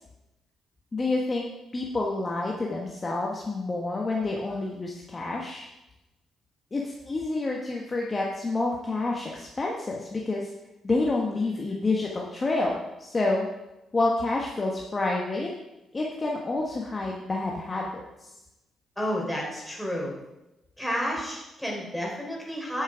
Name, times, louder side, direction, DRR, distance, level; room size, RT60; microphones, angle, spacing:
voice 1, 0.9-5.7 6.7-10.5 10.8-13.5 13.9-15.5 15.9-18.3, left 2 dB, 30° left, -1 dB, 1.3 m, -28 dB
voice 2, 19.0-20.1 20.8-22.8, equal, 5° left, -2 dB, 3.7 m, -31 dB
10.5 x 6.2 x 5.1 m, 0.97 s
cardioid pair, 90°, 0 cm